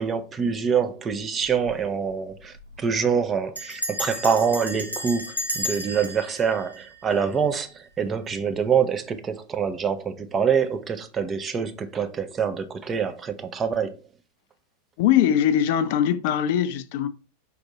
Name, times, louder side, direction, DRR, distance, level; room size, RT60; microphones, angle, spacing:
voice 1, 0.0-14.0, right 6 dB, 20° right, 0.6 m, -25 dB
Bell, 1.4-1.8 2.1-2.2 2.4-2.8 3.6-7.6, left 1 dB, 85° left, 0.8 m, -33 dB
voice 2, 15.0-17.1, left 10 dB, 50° left, 0.4 m, -21 dB
5.4 x 2.6 x 3.7 m
figure-of-eight pair, 90°, 0 cm